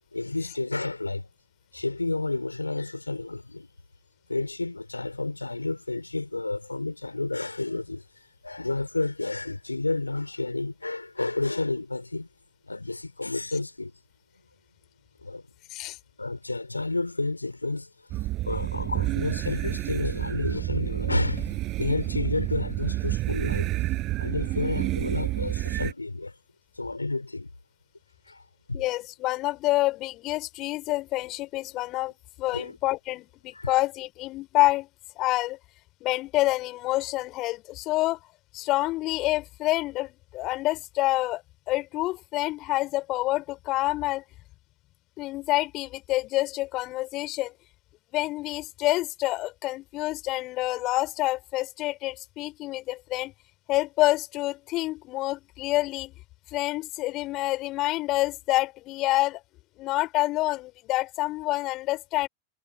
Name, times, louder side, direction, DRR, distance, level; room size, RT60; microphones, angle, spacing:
voice 1, 0.1-1.3 1.7-3.7 4.3-8.0 8.4-12.3 12.7-13.9 15.2-15.4 16.2-17.9 18.4-21.5 21.8-23.7 24.2-26.3 26.8-27.5 28.3-28.4 28.7-28.8 32.5-32.8 33.5-33.7, left 2 dB, 80° left, 5.4 m, -30 dB
sound 1, 18.1-25.9, right 17 dB, 35° right, 6.8 m, -29 dB
voice 2, 28.7-32.1 32.4-34.9 35.2-35.6 36.0-38.2 38.5-41.4 41.7-44.2 45.2-47.5 48.1-53.3 53.7-56.1 56.5-59.4 59.8-62.3, left 18 dB, 40° left, 3.9 m, -27 dB
figure-of-eight pair, 90°, 0 cm